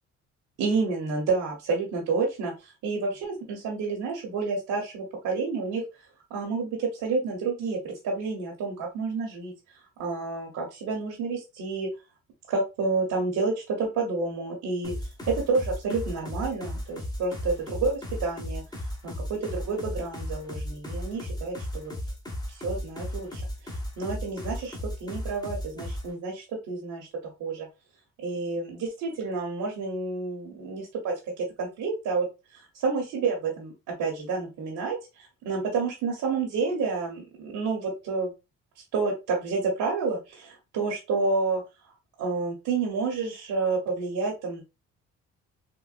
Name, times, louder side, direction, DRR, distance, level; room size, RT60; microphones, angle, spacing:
voice 1, 0.6-5.8 6.3-9.5 10.0-11.9 12.5-14.9 15.3-18.6 19.0-21.9 22.5-23.4 24.0-24.7 25.0-27.1 27.4-27.7 28.2-32.3 32.7-33.7 34.0-38.3 38.9-41.6 42.2-44.6, right 4 dB, 80° right, -2 dB, 1.0 m, -29 dB
sound 1, 14.8-26.1, left 1 dB, 15° left, 0.8 m, -35 dB
3.8 x 2.2 x 2.4 m, 0.26 s
cardioid pair, 90°, 30 cm